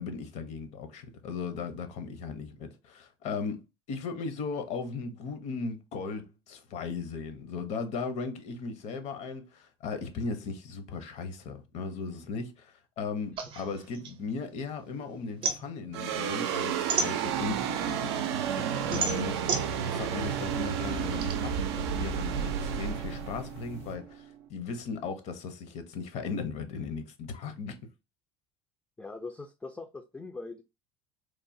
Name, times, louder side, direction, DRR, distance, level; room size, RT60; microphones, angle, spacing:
voice 1, 0.0-3.6 3.9-27.8, left 4 dB, 55° left, 0.6 m, -37 dB
sound 1, 13.4-14.9 15.2-17.7 18.2-21.3, right 4 dB, 40° right, 0.6 m, -33 dB
sound 2, 15.9-24.5, right 8 dB, 90° right, 0.4 m, -31 dB
sound 3, 16.7-24.0, equal, 90° left, 0.8 m, -51 dB
voice 2, 29.0-30.6, left 3 dB, 10° left, 0.3 m, -41 dB
3.0 x 2.1 x 2.5 m
supercardioid pair, 105°, 14 cm